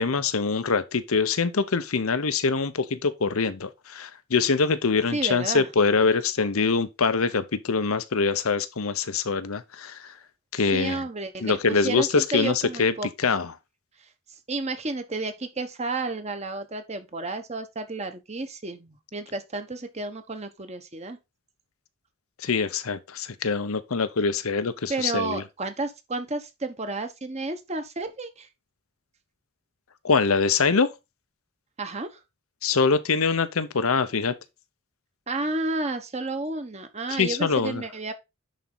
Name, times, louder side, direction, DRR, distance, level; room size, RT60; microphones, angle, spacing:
voice 1, 0.0-10.1 10.5-11.0 11.4-12.9 13.2-13.5 22.4-25.4 30.0-30.9 32.6-34.3 37.2-37.8, left 4 dB, 85° left, 0.8 m, -24 dB
voice 2, 5.1-5.7 10.7-13.1 14.5-21.2 24.9-28.5 31.8-32.2 35.3-38.1, right 3 dB, 30° right, 1.2 m, -31 dB
10.5 x 4.2 x 3.9 m
head